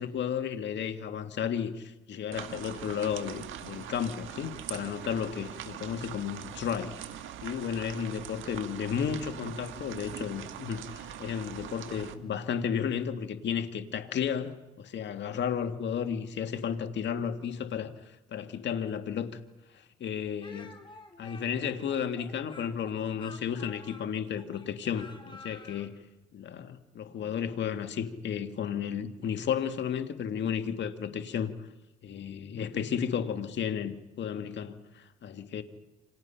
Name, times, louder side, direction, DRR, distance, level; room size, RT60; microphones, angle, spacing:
voice 1, 0.0-7.0 7.4-19.4 19.7-20.7 21.2-25.9 26.3-31.5 32.0-35.6, left 8 dB, 65° left, 1.9 m, -33 dB
sound 1, 2.3-12.1, right 10 dB, 85° right, 1.6 m, -42 dB
Speech, 20.4-25.9, left 3 dB, 25° left, 3.6 m, -50 dB
29.0 x 26.5 x 5.8 m
cardioid pair, 90°, 20 cm